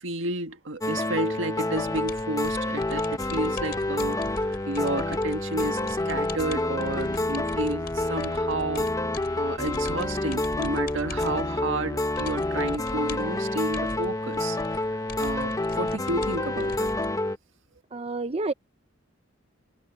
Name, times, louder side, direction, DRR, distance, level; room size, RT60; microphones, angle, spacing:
voice 1, 0.0-8.9 9.4-14.6 15.2-16.9, right 2 dB, 75° right, 1.7 m, -31 dB
sound 1, 0.8-17.4, left 2 dB, 20° left, 1.0 m, -28 dB
sound 2, 1.7-17.1, left 2 dB, 50° left, 4.6 m, -42 dB
voice 2, 17.9-18.5, right 2 dB, 30° right, 0.7 m, -29 dB
head